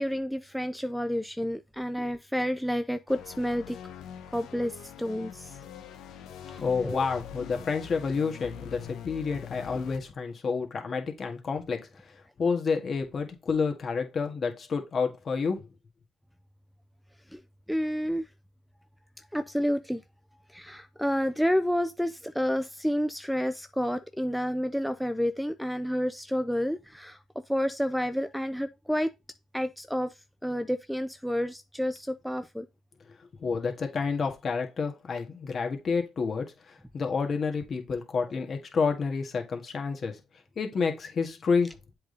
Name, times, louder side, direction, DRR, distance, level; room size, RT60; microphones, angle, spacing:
voice 1, 0.0-3.8 4.3-5.6 6.5-7.0 17.3-17.4 17.7-18.3 19.3-20.0 20.5-27.2 27.5-29.1 29.5-30.1 30.4-32.7, equal, ahead, 0.5 m, -30 dB
sound 1, 3.1-10.0, left 8 dB, 75° left, 0.9 m, -44 dB
voice 2, 6.6-11.8 12.4-15.6 33.4-40.2 40.6-41.7, left 5 dB, 45° left, 1.7 m, -29 dB
7.8 x 3.5 x 3.9 m
cardioid pair, 85°, 0 cm